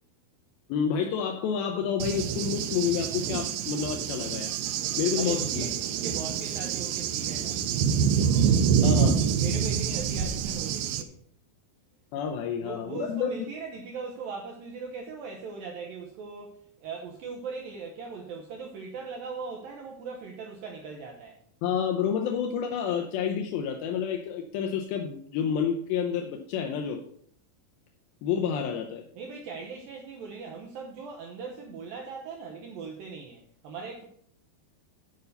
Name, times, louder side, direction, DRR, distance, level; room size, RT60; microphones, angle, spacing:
voice 1, 0.7-4.6 5.0-5.7 8.8-9.2 12.1-13.3 21.6-27.0 28.2-29.1, left 7 dB, 80° left, 3 dB, 2.4 m, -29 dB
Cricket / Thunder, 2.0-11.0, right 7 dB, 90° right, 2.0 m, -26 dB
voice 2, 5.2-7.6 9.4-11.2 12.6-21.4 29.2-34.0, right 4 dB, 70° right, 0 dB, 2.4 m, -40 dB
9.3 x 5.6 x 6.7 m, 0.63 s
omnidirectional pair, 4.9 m